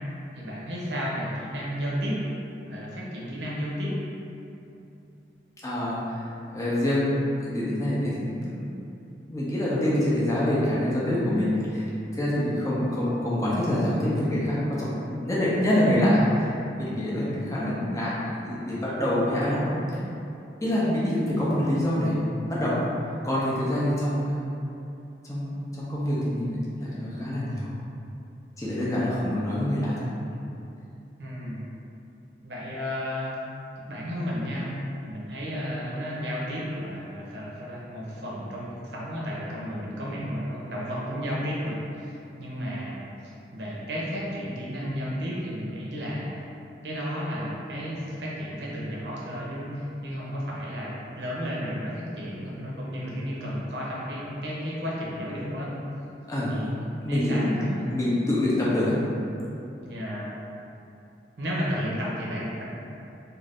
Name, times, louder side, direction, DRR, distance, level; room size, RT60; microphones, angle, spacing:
voice 1, 0.4-2.1 2.7-3.9 28.8-29.2 31.2-31.6 32.4-33.3 33.9-34.7 35.0-43.0 43.5-46.4 46.8-55.7 56.5-56.7 57.1-58.0 59.8-60.4 61.4-62.6, equal, 80° right, -5 dB, 0.7 m, -33 dB
voice 2, 5.6-6.3 6.5-7.1 7.4-8.6 9.3-11.9 12.1-19.8 20.6-22.2 22.5-22.8 23.2-24.4 25.3-27.7 28.6-30.1 56.3-56.6 57.0-59.0, left 1 dB, 20° left, -8 dB, 0.5 m, -26 dB
2.5 x 2.4 x 3.3 m, 2.8 s
head